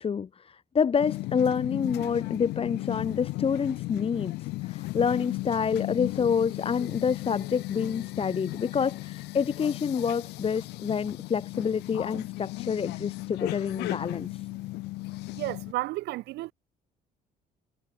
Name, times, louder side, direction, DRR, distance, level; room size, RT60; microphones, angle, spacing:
voice 1, 0.0-14.4, left 6 dB, 35° left, 1.4 m, -28 dB
sound 1, 1.0-15.7, left 20 dB, 90° left, 2.5 m, -35 dB
voice 2, 15.3-16.5, right 18 dB, 85° right, 2.1 m, -32 dB
cardioid pair, 110°, 17 cm